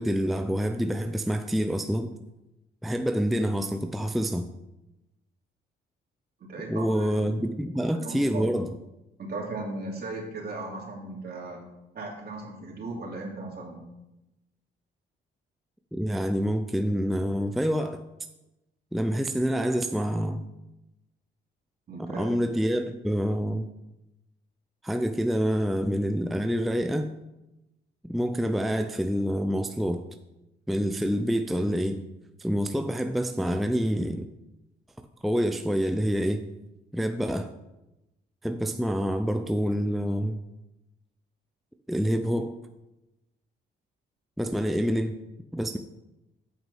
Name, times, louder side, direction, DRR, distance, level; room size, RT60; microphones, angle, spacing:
voice 1, 0.0-2.1 2.8-4.5 6.7-8.7 15.9-18.0 18.9-20.4 22.0-23.7 24.8-27.1 28.0-30.0 30.7-32.0 32.4-34.3 35.2-36.4 36.9-37.5 38.4-40.4 41.9-42.6 44.4-45.1 45.5-45.8, equal, ahead, 7 dB, 0.5 m, -27 dB
voice 2, 6.4-7.3 7.7-8.5 9.2-11.6 11.9-13.8 21.9-22.3, right 2 dB, 50° right, -1 dB, 2.9 m, -37 dB
8.3 x 6.0 x 5.4 m, 0.96 s
cardioid pair, 90°, 20 cm